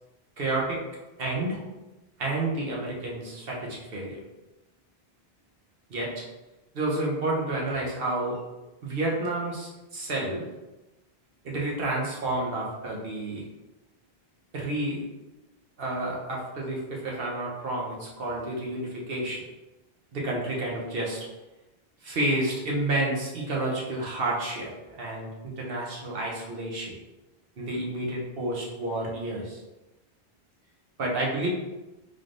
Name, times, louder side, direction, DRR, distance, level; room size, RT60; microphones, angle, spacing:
voice 1, 0.4-0.8 1.2-1.6 2.2-4.2 5.9-6.1 6.7-8.4 8.8-10.4 11.4-13.4 14.5-15.0 15.8-19.4 20.1-21.3 22.0-24.7 25.0-26.9 27.6-29.6 31.0-31.5, right 2 dB, 65° right, -3 dB, 1.1 m, -30 dB
3.9 x 3.3 x 2.5 m, 1.1 s
omnidirectional pair, 1.0 m